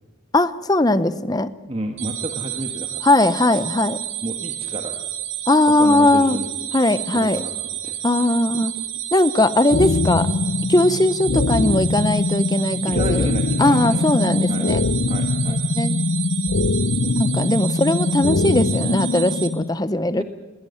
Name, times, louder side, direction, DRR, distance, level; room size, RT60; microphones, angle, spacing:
voice 1, 0.3-1.5 3.0-4.0 5.5-6.4 6.7-7.4 8.0-8.7 9.1-10.3 10.7-13.3 13.6-14.8 15.5-16.0 17.2-20.2, left 2 dB, 20° left, 14 dB, 0.7 m, -19 dB
voice 2, 1.7-3.2 4.2-5.0 5.7-6.5 7.1-8.3 12.9-14.0 14.5-14.7 15.1-15.6 17.0-17.3 20.1-20.2, right 1 dB, 30° right, 4 dB, 1.4 m, -31 dB
sound 1, 2.0-19.5, right 12 dB, 85° right, 2.4 m, -30 dB
sound 2, 9.7-19.7, left 3 dB, 70° left, 0.6 m, -22 dB
20.0 x 17.0 x 9.4 m, 1.2 s
head